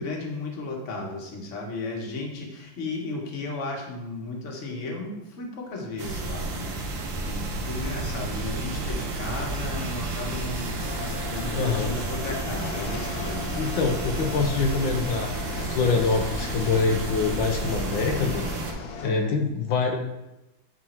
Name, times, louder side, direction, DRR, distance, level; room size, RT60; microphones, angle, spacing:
voice 1, 0.0-7.0 7.3-10.8 11.3-13.8 19.0-19.4, left 2 dB, 40° left, 0 dB, 1.5 m, -34 dB
sound 1, 6.0-18.7, right 2 dB, 75° right, 1.8 m, -31 dB
sound 2, 10.8-19.1, left 4 dB, 60° left, 1.2 m, -37 dB
voice 2, 11.5-11.9 13.5-18.4 19.0-20.0, left 4 dB, 75° left, 3 dB, 1.6 m, -25 dB
10.5 x 3.8 x 4.4 m, 0.96 s
omnidirectional pair, 2.2 m